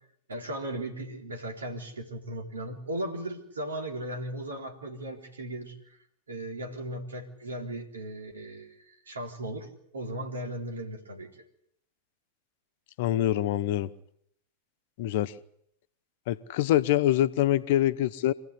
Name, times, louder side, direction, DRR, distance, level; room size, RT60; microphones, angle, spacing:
voice 1, 0.3-5.8 6.3-9.7 9.9-11.3, right 1 dB, 70° right, 3.8 m, -37 dB
voice 2, 13.0-13.9 15.0-15.3 16.3-18.3, left 13 dB, 50° left, 0.9 m, -25 dB
25.0 x 16.0 x 9.9 m
figure-of-eight pair, 90°, 0 cm